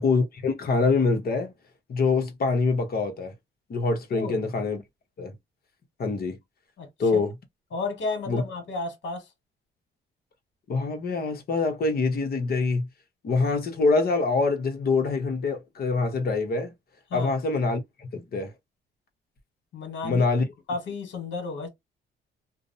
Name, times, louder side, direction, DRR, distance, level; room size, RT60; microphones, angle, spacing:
voice 1, 0.0-1.5 1.9-3.3 3.7-4.8 5.2-5.3 6.0-6.4 7.0-7.3 8.3-8.4 10.7-12.9 13.2-16.7 17.1-18.5 20.0-20.4, left 4 dB, 50° left, 0.9 m, -25 dB
voice 2, 4.1-4.5 6.8-7.2 7.7-9.3 17.1-17.3 19.7-20.3 20.7-21.7, left 3 dB, 70° left, 1.4 m, -32 dB
2.5 x 2.0 x 2.6 m
cardioid pair, 90°, 20 cm